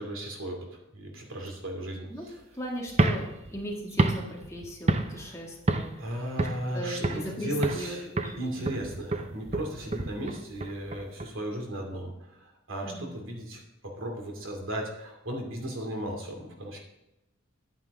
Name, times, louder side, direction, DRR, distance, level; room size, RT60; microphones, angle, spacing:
voice 1, 0.0-2.3 5.1-5.3 6.0-8.1 8.4-16.8, right 1 dB, 75° right, 1 dB, 2.6 m, -36 dB
voice 2, 2.5-6.1 6.7-8.7 12.8-13.2, equal, 15° left, -2 dB, 1.9 m, -38 dB
sound 1, 2.9-5.3 5.7-6.0 6.4-7.3 7.6-7.9 8.2-11.3, right 2 dB, 30° right, 0.6 m, -29 dB
9.7 x 9.2 x 3.6 m, 0.92 s
head